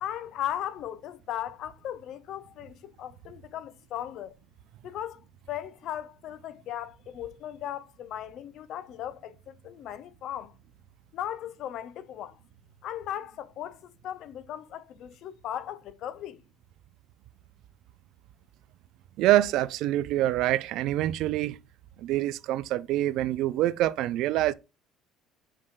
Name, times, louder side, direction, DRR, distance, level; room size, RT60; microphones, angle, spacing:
voice 1, 0.0-4.4 4.8-5.2 5.5-10.5 11.1-12.4 12.8-16.4, left 11 dB, 60° left, 0.4 m, -37 dB
voice 2, 19.2-21.6 22.0-24.5, right 14 dB, 70° right, 0.3 m, -25 dB
5.3 x 3.5 x 2.4 m
cardioid pair, 125°, 0 cm